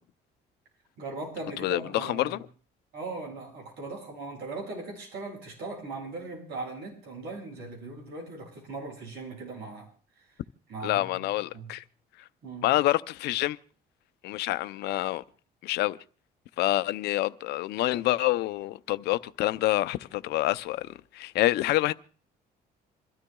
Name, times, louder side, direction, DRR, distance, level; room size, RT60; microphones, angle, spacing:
voice 1, 1.0-2.4 2.9-9.9 10.2-10.3 10.7-11.3 11.5-11.7 12.4-12.7, right 3 dB, 75° right, 7.4 m, -39 dB
voice 2, 1.6-2.4 10.8-11.8 12.6-13.6 14.2-15.2 15.6-16.0 16.6-21.9, left 16 dB, 80° left, 0.6 m, -27 dB
27.0 x 13.0 x 2.3 m
cardioid pair, 110°, 17 cm